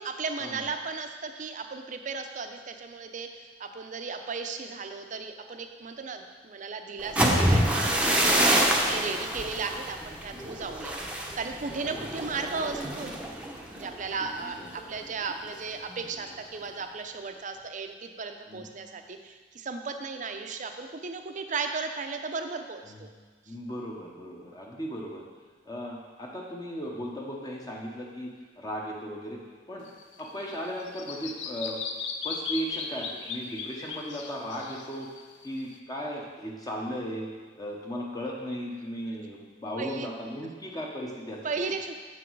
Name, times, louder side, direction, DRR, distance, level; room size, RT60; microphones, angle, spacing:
voice 1, 0.0-7.9 8.2-11.0 11.3-13.2 13.7-23.1 23.5-23.6 39.8-40.1 41.4-41.9, right 4 dB, 45° right, 6 dB, 0.6 m, -35 dB
sound 1, 7.0-14.8 15.2-15.5 15.9-16.3, right 1 dB, 5° right, 0.8 m, -27 dB
voice 2, 8.3-8.9 11.9-12.0 14.6-14.7 18.5-18.7 22.8-23.0 23.5-25.2 25.6-28.3 28.6-29.4 29.7-29.8 30.2-31.8 32.2-37.3 37.6-41.7, equal, 20° left, -2 dB, 0.9 m, -36 dB
Bird vocalization bird call bird song, 29.9-35.8, left 5 dB, 85° left, 0.6 m, -37 dB
7.0 x 6.1 x 4.6 m, 1.5 s
head